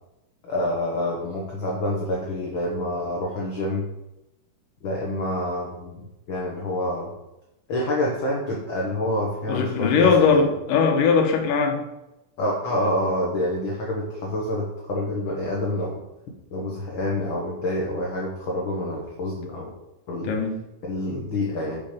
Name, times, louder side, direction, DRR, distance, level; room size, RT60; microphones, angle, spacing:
voice 1, 0.4-3.8 4.8-7.1 7.7-10.4 12.4-15.9 16.5-19.7 20.1-20.3 20.9-21.8, left 1 dB, 55° left, -2 dB, 1.5 m, -27 dB
voice 2, 9.5-11.8 20.2-20.6 21.1-21.2, left 5 dB, 80° left, 3 dB, 2.7 m, -20 dB
6.7 x 6.0 x 5.2 m, 0.93 s
omnidirectional pair, 3.8 m